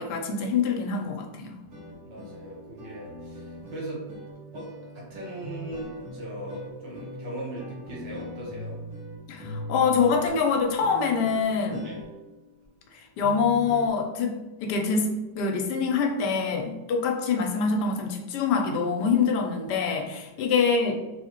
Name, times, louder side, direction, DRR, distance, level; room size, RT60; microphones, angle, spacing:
voice 1, 0.0-1.6 9.3-11.9 12.9-21.0, left 5 dB, 75° left, 3 dB, 1.1 m, -25 dB
sound 1, 1.6-13.9, equal, 60° right, 1.4 m, -41 dB
voice 2, 2.0-4.0 4.5-4.7 4.9-8.8 9.7-9.8 11.8-12.0 20.4-20.5, right 1 dB, 85° right, -4 dB, 1.8 m, -39 dB
3.6 x 2.8 x 2.8 m, 1.1 s
omnidirectional pair, 1.9 m